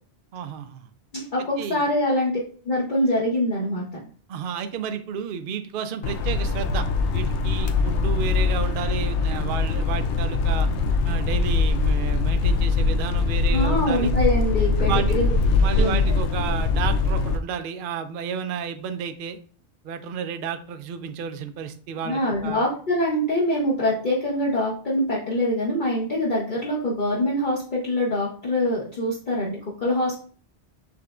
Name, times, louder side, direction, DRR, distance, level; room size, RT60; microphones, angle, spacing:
voice 1, 0.3-0.9 1.6-1.8 4.3-10.7 11.0-14.1 14.9-15.2 15.6-19.4 19.8-22.6, right 7 dB, 60° right, 9 dB, 0.6 m, -32 dB
voice 2, 1.1-2.3 2.6-4.0 13.5-15.3 15.8-16.0 22.0-30.2, left 1 dB, 50° left, -5 dB, 1.1 m, -24 dB
sound 1, 6.0-17.4, left 3 dB, 85° left, 0.9 m, -22 dB
6.1 x 3.3 x 2.5 m, 0.43 s
omnidirectional pair, 1.1 m